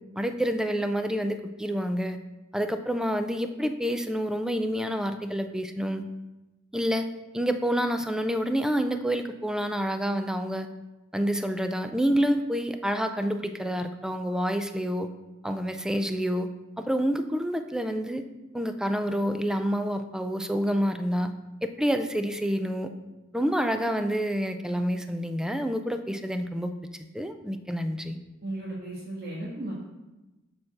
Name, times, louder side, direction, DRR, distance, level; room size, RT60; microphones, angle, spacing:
voice 1, 0.1-2.2 2.5-6.0 6.7-7.1 7.3-10.7 11.1-15.1 15.4-16.5 16.8-18.2 18.5-21.3 21.6-22.9 23.3-26.7 27.1-28.2, equal, 5° right, 8 dB, 0.4 m, -28 dB
voice 2, 28.4-29.7, right 1 dB, 50° right, -6 dB, 1.4 m, -35 dB
6.7 x 4.2 x 6.5 m, 1.0 s
head